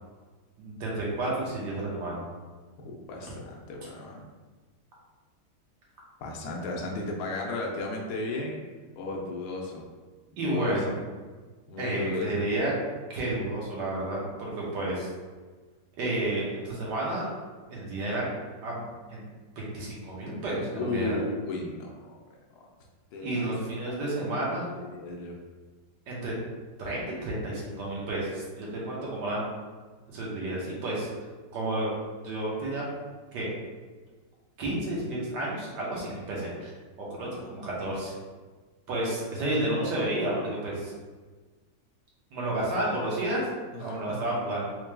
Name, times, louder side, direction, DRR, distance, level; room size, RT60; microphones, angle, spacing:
voice 1, 0.6-2.2 10.4-10.9 11.8-12.7 13.1-15.1 16.0-17.3 17.7-18.2 18.6-18.8 19.1-19.2 19.6-21.2 23.2-24.7 26.1-26.3 26.8-29.5 30.1-31.1 31.5-32.0 32.2-32.8 33.3-33.5 34.6-36.7 37.0-38.1 38.9-40.9 42.3-43.5 43.8-44.8, right 1 dB, 80° right, -5 dB, 1.6 m, -31 dB
voice 2, 2.8-4.2 6.2-8.6 8.9-9.9 10.4-11.0 11.7-12.5 20.7-21.9 23.1-23.5 23.8-24.2 24.7-25.3 37.2-37.5 43.7-44.2, left 3 dB, 75° left, -1 dB, 1.2 m, -35 dB
4.6 x 3.2 x 2.2 m, 1.4 s
omnidirectional pair, 1.8 m